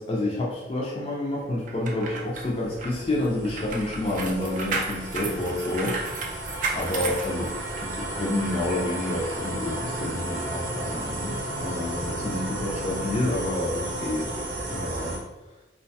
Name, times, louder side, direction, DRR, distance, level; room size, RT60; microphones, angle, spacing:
voice 1, 0.0-6.2 6.7-7.5 7.8-14.3 14.7-15.2, left 1 dB, 30° left, -4 dB, 0.4 m, -29 dB
keys on door and open, 1.7-8.0 8.4-8.6, right 4 dB, 45° right, 0.3 m, -33 dB
sound 1, 1.7-15.2, right 1 dB, 75° right, 0.6 m, -33 dB
2.4 x 2.2 x 2.6 m, 1.1 s
head